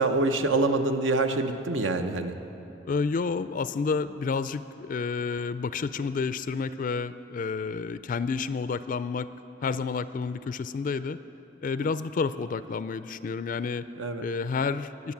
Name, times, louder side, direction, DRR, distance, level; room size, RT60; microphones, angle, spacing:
voice 1, 0.0-2.3 14.0-14.3, right 3 dB, 80° right, 7 dB, 1.0 m, -25 dB
voice 2, 2.9-9.3 9.6-11.2 11.6-13.9 14.2-15.1, left 5 dB, 45° left, 14 dB, 0.3 m, -30 dB
21.0 x 8.3 x 7.3 m, 2.9 s
head